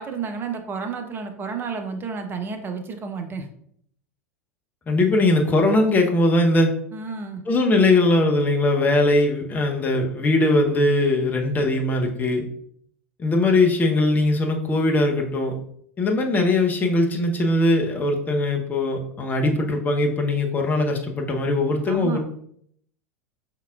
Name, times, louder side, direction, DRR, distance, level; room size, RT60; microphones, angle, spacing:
voice 1, 0.0-3.5 6.9-7.4 21.9-22.2, right 5 dB, 25° right, 5 dB, 0.8 m, -31 dB
voice 2, 4.9-6.7 7.5-12.4 13.2-15.6 16.0-22.2, left 2 dB, 20° left, 2 dB, 0.9 m, -20 dB
5.6 x 3.7 x 2.4 m, 0.67 s
figure-of-eight pair, 85°, 8 cm